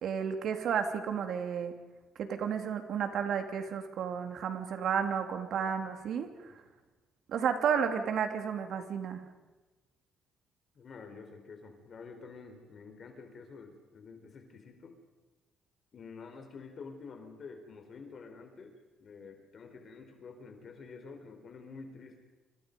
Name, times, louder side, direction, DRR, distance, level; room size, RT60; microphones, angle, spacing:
voice 1, 0.0-1.7 2.2-6.3 7.3-9.2, right 7 dB, 65° right, 6 dB, 3.0 m, -32 dB
voice 2, 6.1-6.6 10.7-15.0 15.9-22.2, left 4 dB, 50° left, 5 dB, 4.2 m, -49 dB
27.0 x 27.0 x 5.4 m, 1.2 s
cardioid pair, 110°, 0 cm